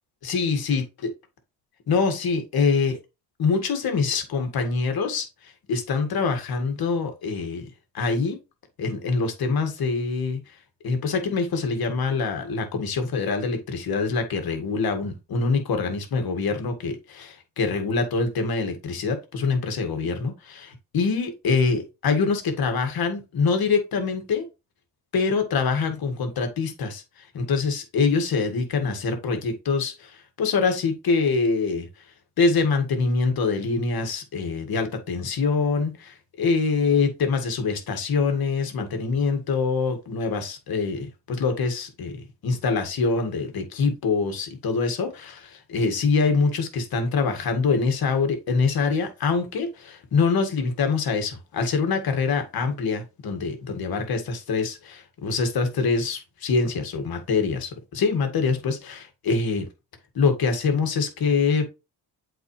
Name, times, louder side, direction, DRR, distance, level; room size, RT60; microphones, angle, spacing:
voice 1, 0.2-1.1 1.9-3.0 3.4-7.7 7.9-8.4 8.8-10.4 10.8-24.4 25.1-31.9 32.4-42.2 42.4-59.7 60.1-61.7, left 4 dB, 60° left, 2.0 m, -25 dB
8.0 x 4.3 x 3.2 m
cardioid pair, 95°, 42 cm